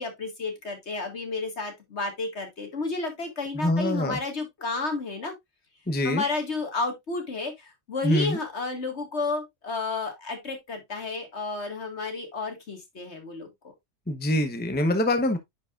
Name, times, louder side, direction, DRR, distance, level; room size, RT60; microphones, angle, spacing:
voice 1, 0.0-5.3 6.0-13.5, left 3 dB, 65° left, 2.2 m, -31 dB
voice 2, 3.5-4.2 5.9-6.2 8.0-8.4 14.1-15.4, left 1 dB, 10° left, 0.8 m, -24 dB
9.5 x 4.9 x 2.5 m
omnidirectional pair, 1.2 m